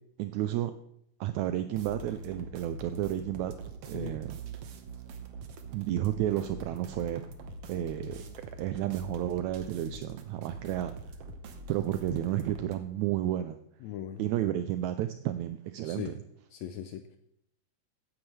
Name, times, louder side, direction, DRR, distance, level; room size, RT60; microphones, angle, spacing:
voice 1, 0.2-0.7 1.2-3.5 3.9-4.3 5.7-7.2 7.7-8.2 8.6-10.9 11.7-13.6 14.2-16.2, right 13 dB, 80° right, 10 dB, 1.8 m, -31 dB
sound 1, 1.7-12.7, right 2 dB, 65° right, 1.8 m, -43 dB
voice 2, 13.8-14.2 15.8-16.2 16.5-17.1, left 10 dB, 80° left, 8 dB, 1.7 m, -39 dB
15.0 x 9.7 x 3.3 m, 0.73 s
omnidirectional pair, 3.5 m